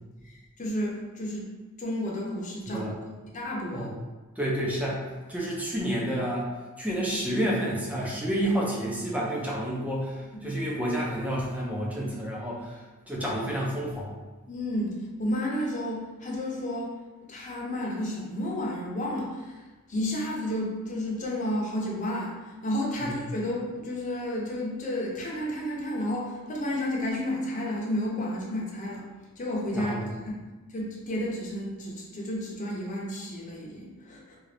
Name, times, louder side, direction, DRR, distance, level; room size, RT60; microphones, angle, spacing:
voice 1, 0.6-1.5 1.8-2.9 3.3-3.9 10.4-10.6 14.5-16.9 17.3-19.6 19.9-29.1 29.4-30.4 30.7-34.4, left 1 dB, 35° left, -3 dB, 0.7 m, -31 dB
voice 2, 4.4-5.0 5.3-6.5 6.8-12.8 13.1-14.1 23.0-23.1 29.7-30.1, equal, 5° right, -4 dB, 0.6 m, -29 dB
3.9 x 2.4 x 3.2 m, 1.3 s
head